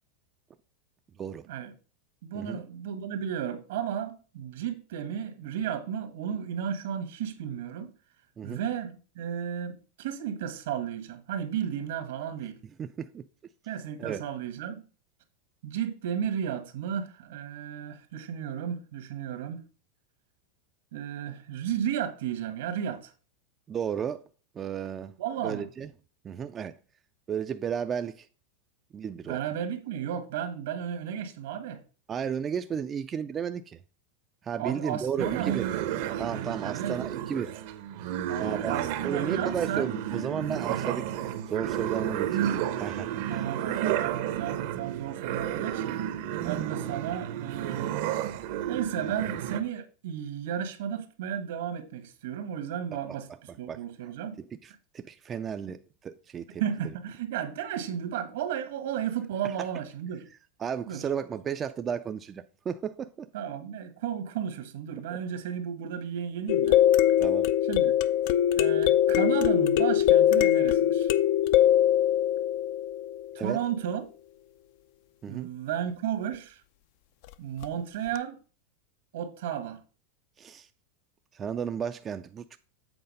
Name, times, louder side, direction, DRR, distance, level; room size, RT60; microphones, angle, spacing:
voice 1, 2.2-7.9 8.4-12.6 13.6-14.8 15.6-19.6 20.9-23.1 25.2-25.6 29.2-31.8 34.6-35.5 36.6-36.9 38.3-40.0 43.3-45.9 46.4-48.0 48.7-54.4 56.6-60.2 60.9-61.0 63.3-66.8 67.7-68.0 68.6-71.1 73.3-74.0 75.3-76.6 77.4-78.4 79.1-79.8, right 9 dB, 75° right, 1.5 m, -33 dB
voice 2, 12.8-13.2 14.0-14.2 23.7-24.2 24.6-25.1 25.4-25.9 26.2-26.7 27.3-28.3 28.9-29.4 32.1-33.8 34.4-35.7 36.2-37.5 38.4-42.5 42.8-43.5 46.4-46.5 53.7-53.8 54.4-56.6 60.6-63.3 65.1-65.2 67.2-67.5 73.4-73.6 75.2-75.5 80.4-80.7 81.3-82.6, right 7 dB, 25° right, 0.4 m, -33 dB
sound 1, 35.2-49.6, right 11 dB, 60° right, 0.8 m, -32 dB
sound 2, 66.5-73.4 77.6-77.7 78.2-78.3, left 11 dB, 60° left, 0.5 m, -22 dB
7.9 x 4.1 x 5.3 m
supercardioid pair, 140°, 0 cm